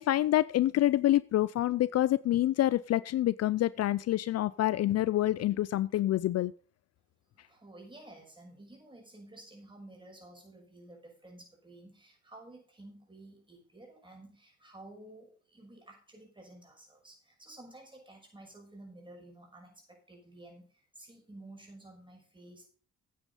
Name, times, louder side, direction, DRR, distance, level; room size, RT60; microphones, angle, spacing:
voice 1, 0.0-6.5, left 14 dB, 55° left, 19 dB, 0.4 m, -27 dB
voice 2, 7.3-22.7, right 1 dB, 15° right, 0 dB, 5.9 m, -52 dB
9.4 x 9.0 x 5.4 m, 0.40 s
cardioid pair, 90°, 30 cm